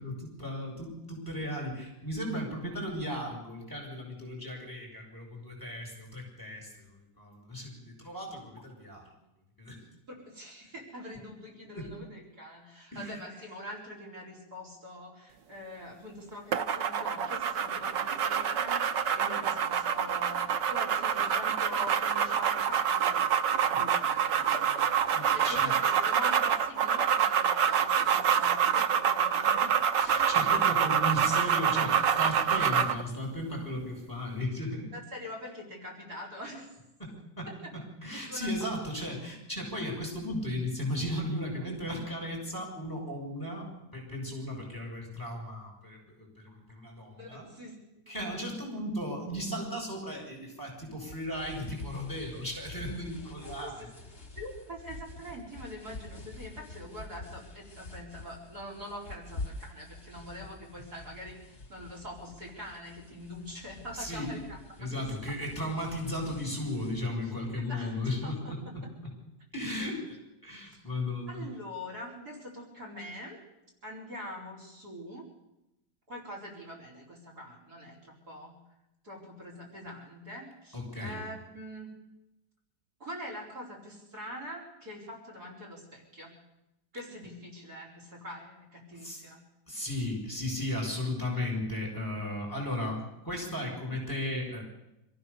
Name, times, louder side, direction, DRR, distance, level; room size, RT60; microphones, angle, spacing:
voice 1, 0.0-9.0 9.6-9.8 11.7-11.9 12.9-13.2 25.1-25.7 30.0-34.9 37.0-47.5 48.1-53.9 63.9-64.3 64.8-68.9 69.5-70.2 70.4-71.4 80.7-81.2 88.9-89.2 89.7-94.6, left 1 dB, 10° left, -2 dB, 7.0 m, -36 dB
voice 2, 10.2-25.0 25.3-29.8 30.1-30.2 34.9-36.7 37.6-37.7 38.1-38.5 47.2-48.3 53.4-53.9 54.4-65.0 67.2-67.3 67.6-68.3 69.8-69.9 70.6-70.8 71.3-73.4 73.8-75.3 76.1-78.6 79.0-82.0 83.0-86.3 86.9-89.4, equal, 60° right, 1 dB, 5.4 m, -44 dB
sound 1, 16.5-33.0, right 8 dB, 85° right, 1.7 m, -27 dB
sound 2, 51.1-67.0, left 2 dB, 35° left, 3.1 m, -47 dB
26.5 x 15.5 x 7.0 m, 0.92 s
omnidirectional pair, 1.9 m